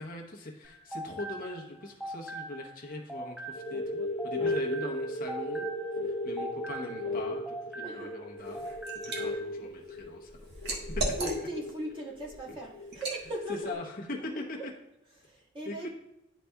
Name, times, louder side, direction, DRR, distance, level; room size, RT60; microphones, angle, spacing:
voice 1, 0.0-5.7 6.2-8.6 9.0-10.5 13.5-14.7 15.7-15.9, left 2 dB, 45° left, 0 dB, 0.9 m, -41 dB
sound 1, 0.6-3.9 4.2-8.3 8.5-9.4, right 2 dB, ahead, 0.6 m, -41 dB
sound 2, 3.5-13.7, left 1 dB, 80° left, 0.8 m, -36 dB
voice 2, 7.8-8.2 11.2-13.8 14.3-14.4 15.2-15.9, right 1 dB, 25° right, -4 dB, 1.6 m, -39 dB
Liquid, 8.4-9.2 9.6-11.7 12.2-12.4 12.9-13.2, right 2 dB, 60° right, 1.3 m, -35 dB
11.0 x 4.1 x 2.3 m, 0.88 s
head